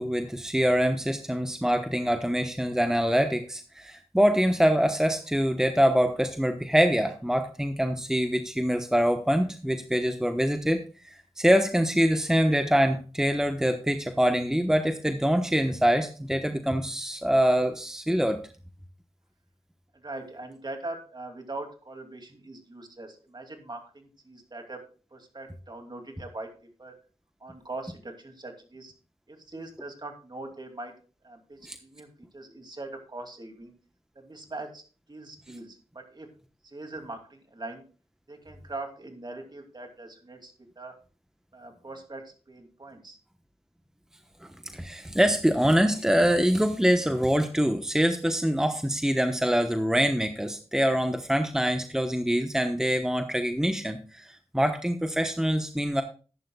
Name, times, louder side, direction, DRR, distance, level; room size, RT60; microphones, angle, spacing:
voice 1, 0.0-18.4 31.7-31.8 44.7-56.0, equal, 5° right, 7 dB, 1.1 m, -24 dB
voice 2, 19.9-24.8 25.1-27.0 27.4-28.9 29.3-30.9 31.2-33.7 34.1-34.8 35.1-36.3 36.6-37.8 38.3-40.9 41.5-43.2, right 2 dB, 40° right, 4 dB, 2.7 m, -41 dB
13.5 x 11.0 x 2.3 m, 0.36 s
cardioid pair, 40°, 11 cm